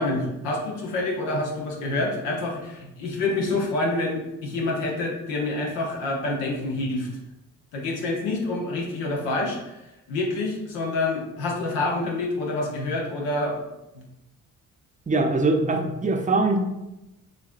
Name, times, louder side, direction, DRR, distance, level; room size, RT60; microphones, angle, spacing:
voice 1, 0.0-7.1 7.7-9.8 10.1-13.6 13.9-14.0, left 2 dB, 85° left, -1 dB, 1.0 m, -27 dB
voice 2, 15.1-16.6, right 3 dB, 15° right, 4 dB, 0.6 m, -22 dB
6.5 x 2.6 x 2.5 m, 0.93 s
hypercardioid pair, 45°, 44 cm